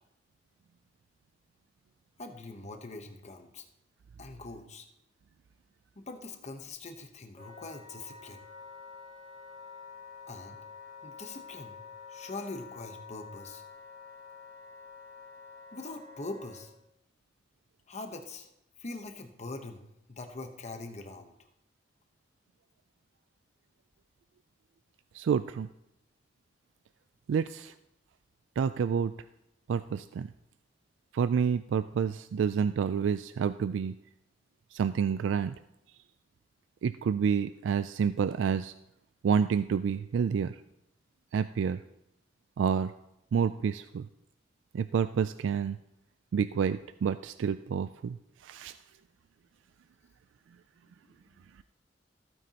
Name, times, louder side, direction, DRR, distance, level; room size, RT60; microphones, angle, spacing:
voice 1, 2.2-3.6 4.2-4.9 6.0-8.4 10.3-10.6 11.0-11.8 12.1-13.6 15.7-16.7 17.9-18.5 18.8-19.8 20.1-21.3, left 3 dB, 40° left, 6 dB, 1.0 m, -42 dB
Wind instrument woodwind instrument, 7.3-16.7, left 5 dB, 50° right, 3.3 m, -48 dB
voice 2, 25.1-25.7 27.3-27.7 28.6-29.1 29.7-30.3 31.1-33.9 34.7-35.5 36.8-38.7 39.2-40.6 41.3-41.8 42.6-42.9 43.3-44.1 44.7-45.8 46.3-48.2 48.4-48.7, right 6 dB, 85° right, 13 dB, 0.3 m, -28 dB
15.0 x 9.1 x 2.9 m, 0.83 s
head